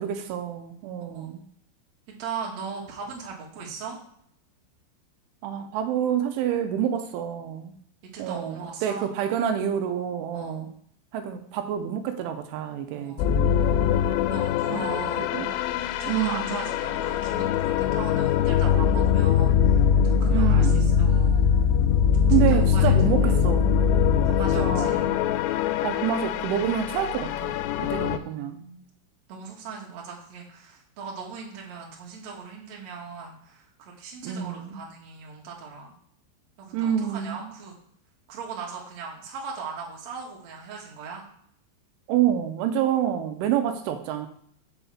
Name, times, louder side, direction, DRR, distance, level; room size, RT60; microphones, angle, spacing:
voice 1, 0.0-1.4 5.4-7.8 8.2-10.7 11.1-13.7 14.7-15.5 16.1-16.7 20.3-21.2 22.3-23.7 24.6-25.2 25.8-27.5 27.8-28.6 34.2-34.8 36.7-37.5 42.1-44.3, right 10 dB, 80° right, 7 dB, 3.1 m, -28 dB
voice 2, 2.2-4.0 8.1-9.1 10.3-10.7 12.9-13.3 14.3-15.3 16.0-21.5 22.2-23.4 24.2-25.1 27.9-28.8 29.3-35.9 36.6-37.7 38.3-41.2, right 5 dB, 50° right, -2 dB, 2.2 m, -39 dB
sound 1, 13.2-28.2, left 8 dB, 90° left, 3.1 m, -22 dB
6.1 x 5.6 x 7.1 m, 0.67 s
omnidirectional pair, 5.5 m